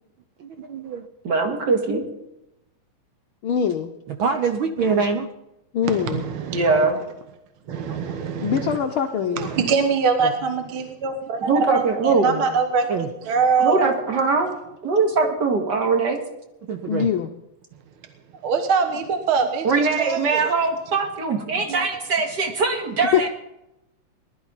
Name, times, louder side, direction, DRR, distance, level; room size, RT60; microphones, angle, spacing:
voice 1, 0.6-1.1 4.1-5.3 6.6-6.8 7.9-8.1 9.3-9.6 10.2-10.3 12.9-13.1 16.7-17.1 18.8-18.9 21.7-21.9, right 5 dB, 70° right, 6 dB, 1.2 m, -26 dB
voice 2, 1.2-2.0 6.5-7.0 11.5-12.4 13.6-14.5 14.8-16.2 19.6-23.3, right 4 dB, 40° right, 3 dB, 2.4 m, -21 dB
voice 3, 3.4-3.9 5.7-6.3 8.4-9.5 16.9-17.3 23.1-23.3, left 8 dB, 80° left, 5 dB, 1.2 m, -23 dB
voice 4, 5.8-6.9 7.7-8.8 9.4-13.0 13.3-13.9 18.4-20.5, right 5 dB, 55° right, 6 dB, 1.7 m, -23 dB
20.0 x 12.5 x 4.1 m, 0.88 s
omnidirectional pair, 3.4 m